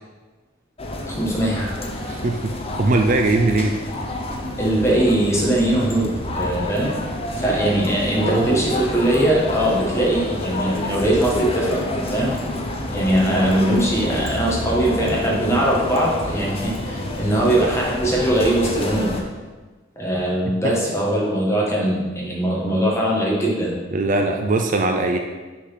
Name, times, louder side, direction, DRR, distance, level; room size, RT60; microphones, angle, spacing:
sound 1, 0.8-19.2, left 1 dB, 30° left, 0.8 m, -28 dB
voice 1, 1.1-1.8 4.6-6.1 6.4-7.0 7.4-12.3 12.9-19.1 20.0-23.8, right 1 dB, 15° left, -4 dB, 1.5 m, -21 dB
voice 2, 2.0-2.4 2.8-3.7 8.2-8.7 20.6-20.7 23.9-25.2, right 2 dB, 40° right, 4 dB, 0.4 m, -20 dB
6.3 x 4.0 x 5.7 m, 1.3 s
head